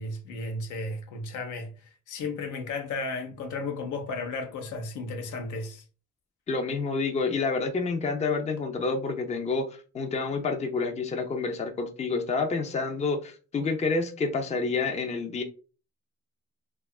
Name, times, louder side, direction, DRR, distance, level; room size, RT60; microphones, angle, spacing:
voice 1, 0.0-1.7 2.1-5.8, left 3 dB, 80° left, 0.6 m, -34 dB
voice 2, 6.5-15.4, left 4 dB, 25° left, 0.4 m, -28 dB
2.8 x 2.3 x 2.3 m
cardioid pair, 90°, 30 cm